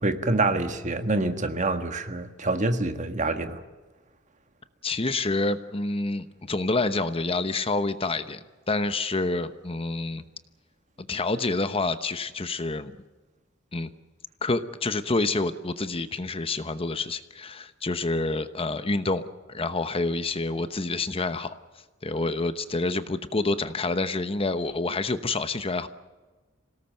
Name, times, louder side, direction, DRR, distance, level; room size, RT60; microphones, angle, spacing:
voice 1, 0.0-3.6, right 2 dB, 40° right, 8 dB, 1.6 m, -26 dB
voice 2, 4.8-10.2 11.0-13.0 13.7-13.9 14.4-21.5 22.0-25.9, left 3 dB, 30° left, 11 dB, 0.9 m, -28 dB
26.5 x 18.0 x 7.8 m, 1.3 s
head